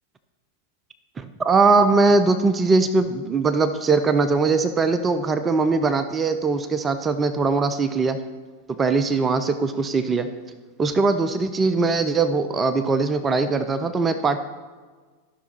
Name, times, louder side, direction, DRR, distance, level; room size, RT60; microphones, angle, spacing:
voice 1, 1.4-8.2 8.8-10.3 10.8-14.4, right 4 dB, 20° right, 11 dB, 0.5 m, -21 dB
14.0 x 5.9 x 4.2 m, 1.4 s
figure-of-eight pair, 90°, 0 cm